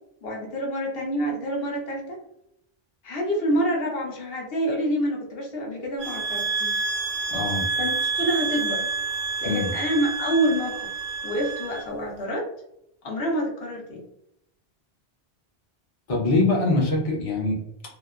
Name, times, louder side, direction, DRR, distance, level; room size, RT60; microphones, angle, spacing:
voice 1, 0.2-2.2 3.0-6.8 7.8-8.8 9.4-10.9 11.2-12.5 13.0-14.1, equal, 70° left, -1 dB, 0.9 m, -27 dB
sound 1, 6.0-11.8, right 4 dB, 35° right, 0.4 m, -28 dB
voice 2, 7.3-7.6 9.4-9.7 16.1-17.6, left 2 dB, 40° left, -1 dB, 0.7 m, -23 dB
2.8 x 2.1 x 2.2 m, 0.75 s
omnidirectional pair, 1.0 m